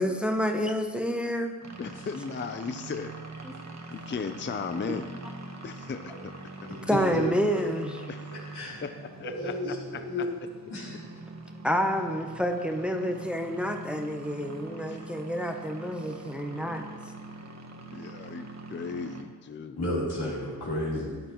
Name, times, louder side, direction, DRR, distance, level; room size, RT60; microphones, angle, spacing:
voice 1, 0.0-1.5 3.4-3.6 6.9-8.1 11.6-16.9, equal, 5° right, 4 dB, 0.8 m, -28 dB
sound 1, 1.6-19.2, right 2 dB, 45° right, 1.2 m, -43 dB
voice 2, 1.8-3.1 3.9-5.1 5.6-6.3 6.6-6.7 8.1-8.3 8.8-10.3 14.9-15.1 17.9-19.8, left 5 dB, 30° left, 8 dB, 0.5 m, -36 dB
voice 3, 6.9-7.2 8.5-8.8 9.2-9.8 10.0-10.2 10.7-11.0 19.8-21.2, left 1 dB, 90° left, -6 dB, 3.5 m, -31 dB
13.0 x 10.0 x 3.0 m, 1.5 s
wide cardioid pair, 85°, 38 cm